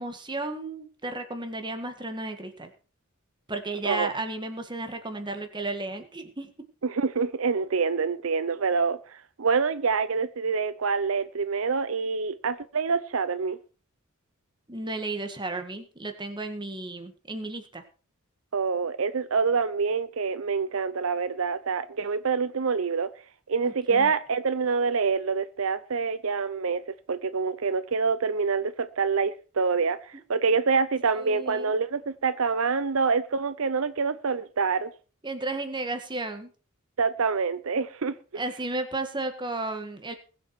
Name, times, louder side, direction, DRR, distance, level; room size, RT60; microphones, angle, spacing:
voice 1, 0.0-2.7 3.5-6.5 14.7-17.8 23.6-24.1 31.2-31.7 35.2-36.5 38.3-40.1, right 2 dB, 20° right, 2.0 m, -33 dB
voice 2, 6.8-13.6 18.5-23.1 23.5-26.8 27.1-34.9 37.0-38.4, right 5 dB, 75° right, 0.7 m, -26 dB
21.0 x 7.6 x 4.6 m
head